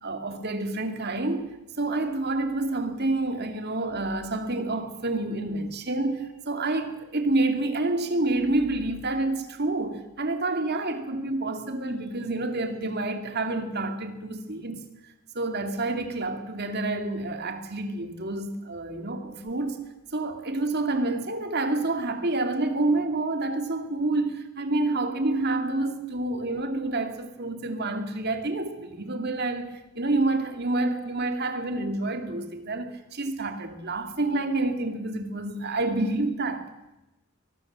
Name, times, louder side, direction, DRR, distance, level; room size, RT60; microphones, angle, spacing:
voice 1, 0.0-1.5 1.8-14.9 15.3-19.8 20.1-36.6, right 2 dB, 45° right, 2.7 m, -28 dB
23.0 x 20.5 x 7.6 m
head